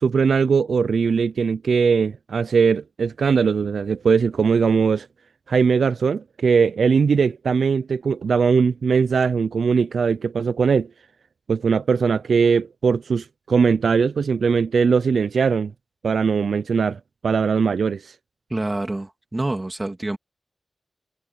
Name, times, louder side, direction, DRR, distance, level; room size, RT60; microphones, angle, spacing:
voice 1, 0.0-5.1 5.5-10.9 11.5-15.7 16.0-18.1, right 5 dB, 85° right, 0.3 m, -20 dB
voice 2, 18.5-20.2, right 2 dB, 20° right, 2.5 m, -27 dB
wide cardioid pair, 125°, 0 cm